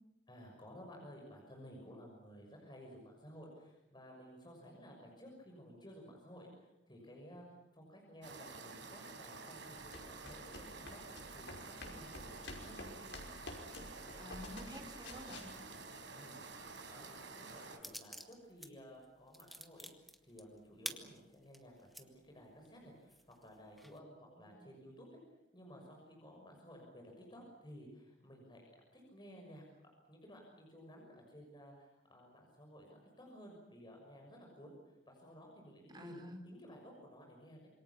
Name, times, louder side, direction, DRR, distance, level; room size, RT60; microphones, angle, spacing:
voice 1, 0.3-7.4 7.7-12.9 16.1-25.1 25.5-28.6 28.9-29.6 30.1-37.7, equal, 25° left, 0 dB, 6.3 m, -55 dB
sound 1, 8.2-17.8, right 3 dB, 75° right, 4.6 m, -50 dB
sound 2, 9.8-15.7, left 2 dB, 80° left, 5.5 m, -50 dB
voice 2, 10.5-11.0 14.2-15.5 24.4-24.6 35.9-36.4, equal, 25° right, 5 dB, 3.6 m, -51 dB
sound 3, 17.8-18.7 19.0-22.0 22.6-22.7 23.1-24.0, equal, ahead, 1.9 m, -48 dB
27.0 x 23.5 x 7.2 m, 0.97 s
head